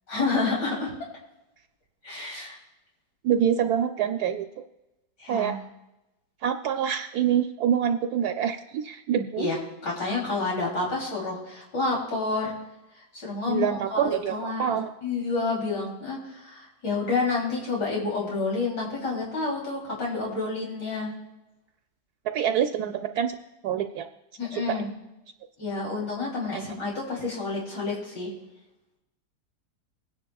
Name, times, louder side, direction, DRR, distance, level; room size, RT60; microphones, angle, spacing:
voice 1, 0.1-0.9 2.0-2.6 5.2-5.6 9.4-9.6 9.8-12.5 13.2-14.8 15.0-21.1 24.4-24.9 25.6-28.3, left 3 dB, 85° left, -4 dB, 3.7 m, -29 dB
voice 2, 3.2-4.5 5.3-5.5 6.4-9.5 13.5-14.9 22.3-23.3 23.6-24.0 24.5-24.7, right 9 dB, 70° right, 5 dB, 1.0 m, -26 dB
22.0 x 9.9 x 2.3 m, 0.96 s
omnidirectional pair, 1.8 m